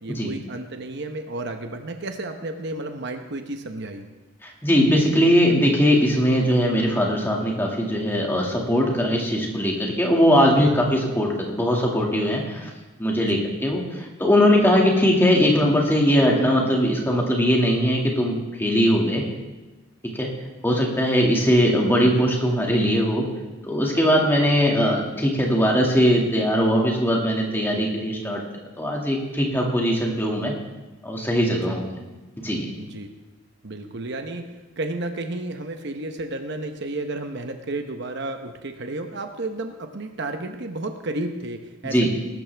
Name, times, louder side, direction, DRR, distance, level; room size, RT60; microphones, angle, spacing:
voice 1, 0.0-4.1 10.6-10.7 13.2-13.5 31.7-31.8 32.8-33.1 33.6-42.1, right 2 dB, 55° right, 6 dB, 0.9 m, -32 dB
voice 2, 4.4-12.7 13.0-19.2 20.1-20.3 20.6-23.2 23.6-28.4 28.8-30.5 31.0-31.9 32.4-32.7 41.8-42.1, equal, 10° left, -1 dB, 2.0 m, -20 dB
20.5 x 12.5 x 3.4 m, 1.1 s
head